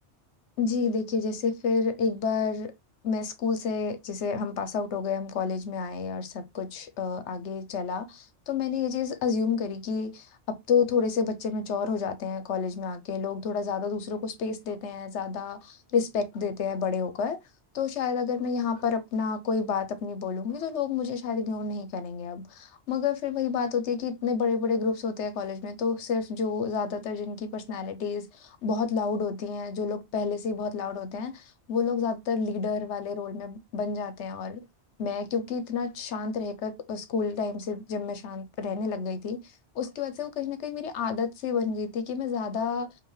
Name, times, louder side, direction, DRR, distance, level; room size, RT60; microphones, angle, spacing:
voice 1, 0.6-2.7 3.0-17.4 17.7-34.6 35.0-39.4 39.7-42.9, left 5 dB, 80° left, 1.0 m, -30 dB
4.9 x 2.6 x 3.2 m
omnidirectional pair, 1.2 m